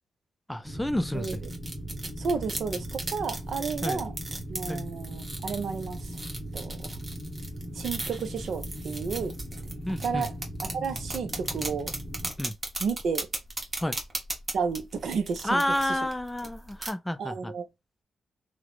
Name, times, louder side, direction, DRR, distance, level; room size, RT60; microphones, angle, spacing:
voice 1, 0.5-1.5 3.8-4.0 4.7-4.9 9.9-10.3 12.4-12.5 13.8-14.0 15.4-17.5, left 1 dB, 10° left, 0.4 m, -30 dB
sound 1, 0.6-12.3, right 1 dB, 10° right, 1.1 m, -39 dB
sound 2, 1.0-16.9, right 2 dB, 35° right, 1.1 m, -38 dB
voice 2, 2.2-4.1 4.5-6.2 6.5-6.9 7.7-9.4 10.0-10.3 10.7-11.9 12.8-13.3 14.5-16.0 17.2-17.6, right 5 dB, 70° right, 0.5 m, -32 dB
2.9 x 2.0 x 2.2 m
supercardioid pair, 45°, 0 cm